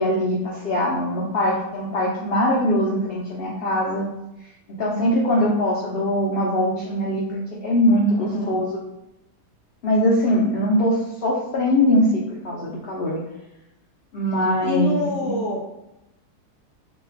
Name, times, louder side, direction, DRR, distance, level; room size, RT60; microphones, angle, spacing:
voice 1, 0.0-4.0 4.7-8.7 9.8-13.2 14.1-15.0 15.2-15.3, left 1 dB, 85° left, -5 dB, 0.5 m, -22 dB
voice 2, 8.2-8.6 14.4-15.6, left 1 dB, 60° left, -2 dB, 0.8 m, -27 dB
3.1 x 2.2 x 3.3 m, 0.90 s
omnidirectional pair, 1.7 m